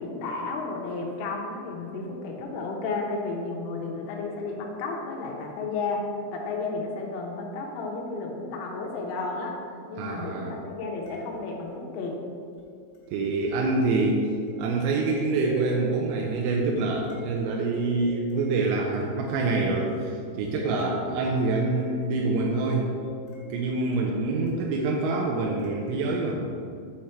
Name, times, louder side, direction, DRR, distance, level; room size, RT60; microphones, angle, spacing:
voice 1, 0.0-9.6 9.9-12.2, left 3 dB, 80° left, -1 dB, 3.2 m, -32 dB
voice 2, 10.0-10.5 13.1-14.3 14.6-22.9 23.5-26.4, right 3 dB, 85° right, 0 dB, 2.6 m, -26 dB
sound 1, 11.1-26.2, left 3 dB, 65° left, 2.6 m, -46 dB
8.4 x 4.3 x 4.3 m, 2.3 s
omnidirectional pair, 5.8 m